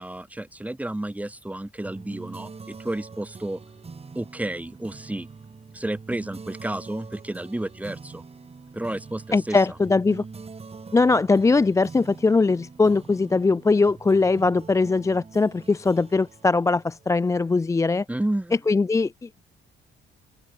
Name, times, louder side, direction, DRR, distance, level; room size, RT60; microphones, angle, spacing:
voice 1, 0.0-3.6 4.1-5.3 5.7-8.2 8.7-9.6 18.1-18.5, right 1 dB, 5° right, 1.0 m, -31 dB
sound 1, 1.8-17.7, right 4 dB, 30° right, 3.7 m, -44 dB
voice 2, 9.3-10.2 10.9-18.1 18.7-19.4, left 3 dB, 15° left, 0.4 m, -21 dB
open air
cardioid pair, 90°, 20 cm